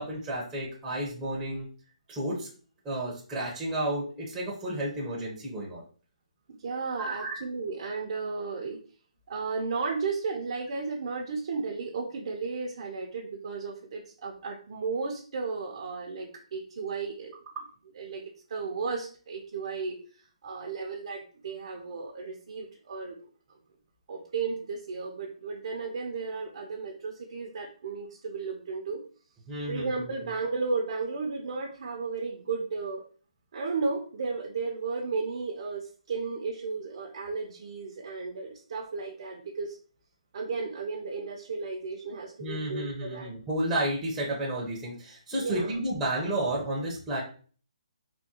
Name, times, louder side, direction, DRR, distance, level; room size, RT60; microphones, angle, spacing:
voice 1, 0.0-1.7 2.1-2.5 2.8-5.8 7.0-7.4 17.6-17.7 29.5-30.3 42.4-47.2, right 1 dB, 10° right, -4 dB, 0.7 m, -32 dB
voice 2, 6.5-8.8 9.3-17.3 18.0-18.2 18.5-23.2 24.1-29.0 29.7-33.1 33.5-39.8 40.3-43.3 45.3-45.7, right 4 dB, 55° right, 0 dB, 0.6 m, -34 dB
3.5 x 2.2 x 2.8 m, 0.42 s
hypercardioid pair, 160°, 4 cm